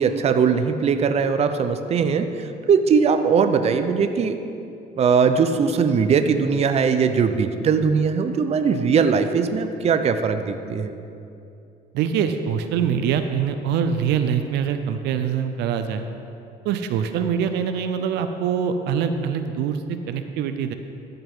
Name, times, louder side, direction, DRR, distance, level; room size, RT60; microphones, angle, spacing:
voice 1, 0.0-4.4 5.0-10.9, right 6 dB, 40° right, 8 dB, 0.5 m, -20 dB
voice 2, 11.9-16.1 16.6-20.7, right 7 dB, 80° right, 8 dB, 0.5 m, -24 dB
12.5 x 5.8 x 3.6 m, 2.7 s
cardioid pair, 110°, 17 cm